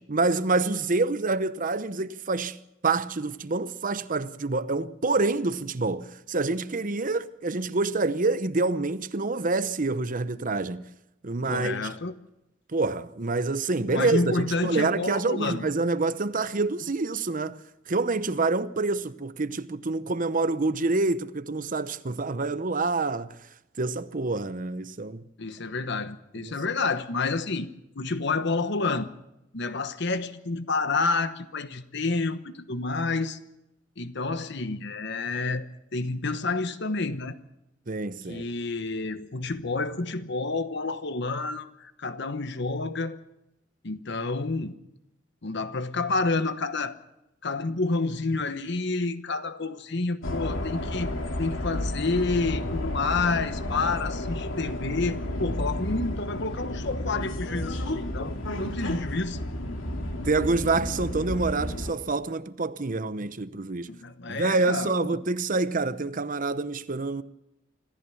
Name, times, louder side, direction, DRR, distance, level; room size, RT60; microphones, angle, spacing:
voice 1, 0.1-10.8 11.2-11.9 12.7-17.6 17.9-23.3 23.8-25.2 26.3-26.5 37.9-38.4 58.9-59.0 60.2-63.9 64.3-67.2, right 3 dB, 45° right, 0.8 m, -27 dB
voice 2, 11.5-12.1 13.9-15.6 25.4-27.7 27.9-29.1 29.5-33.4 34.0-37.4 38.3-43.2 43.8-44.7 45.4-46.9 47.4-51.1 51.4-59.4 63.9-65.2, left 3 dB, 60° left, 1.1 m, -29 dB
sound 1, 50.2-61.9, left 1 dB, 90° left, 2.4 m, -32 dB
26.0 x 14.5 x 7.1 m
head